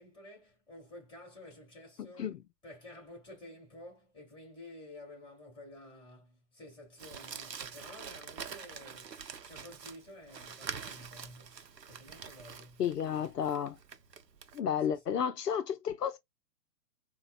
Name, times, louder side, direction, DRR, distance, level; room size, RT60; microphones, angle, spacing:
voice 1, 0.0-2.3 2.6-11.5 11.8-12.8 14.8-15.2, left 1 dB, 10° left, 1.9 m, -52 dB
Crumpling crinkling, 7.0-14.6, right 6 dB, 85° right, 0.7 m, -46 dB
voice 2, 12.8-13.8 14.5-16.2, left 8 dB, 75° left, 0.6 m, -32 dB
4.0 x 2.2 x 2.3 m
figure-of-eight pair, 125°, 48 cm